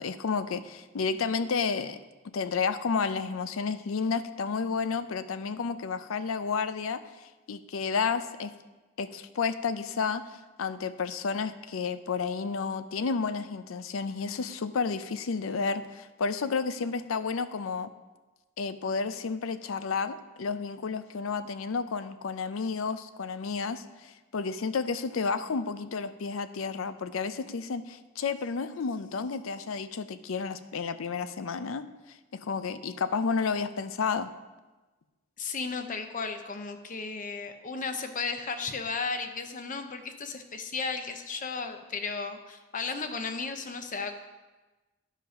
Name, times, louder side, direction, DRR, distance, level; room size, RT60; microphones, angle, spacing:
voice 1, 0.0-2.0 2.3-7.0 7.5-8.5 9.0-10.2 10.6-17.9 18.6-31.9 32.3-34.3, left 5 dB, 75° left, 12 dB, 0.5 m, -31 dB
voice 2, 35.4-44.2, left 4 dB, 40° left, 7 dB, 0.7 m, -34 dB
10.5 x 5.0 x 5.7 m, 1.2 s
head